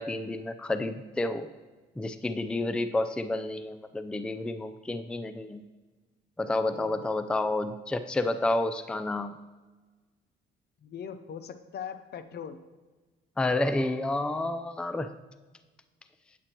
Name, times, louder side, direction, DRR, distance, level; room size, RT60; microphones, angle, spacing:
voice 1, 0.0-1.5 2.0-5.6 6.4-9.4 13.4-15.1, left 2 dB, 5° left, 10 dB, 0.4 m, -30 dB
voice 2, 6.7-7.1 10.8-12.6, left 8 dB, 55° left, 11 dB, 0.6 m, -40 dB
8.7 x 8.4 x 2.9 m, 1.3 s
cardioid pair, 90°, 20 cm